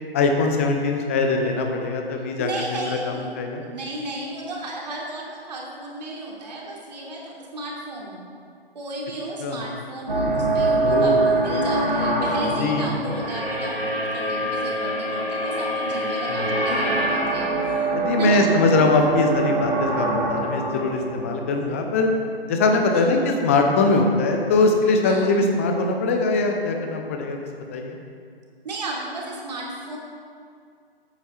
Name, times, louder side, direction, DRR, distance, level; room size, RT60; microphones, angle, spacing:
voice 1, 0.1-3.0 3.4-3.6 9.4-9.6 10.8-11.2 12.6-12.9 16.3-16.5 17.9-22.1 22.5-23.2 23.4-27.4 27.7-28.0, left 3 dB, 15° left, 3 dB, 0.6 m, -21 dB
voice 2, 2.2-8.3 8.7-17.9 18.2-18.5 22.9-23.2 25.0-25.4 28.6-30.0, right 2 dB, 45° right, -3 dB, 2.8 m, -34 dB
sound 1, 10.1-22.2, right 2 dB, 65° right, 3.2 m, -24 dB
13.5 x 8.9 x 4.4 m, 2.2 s
figure-of-eight pair, 140°, 30 cm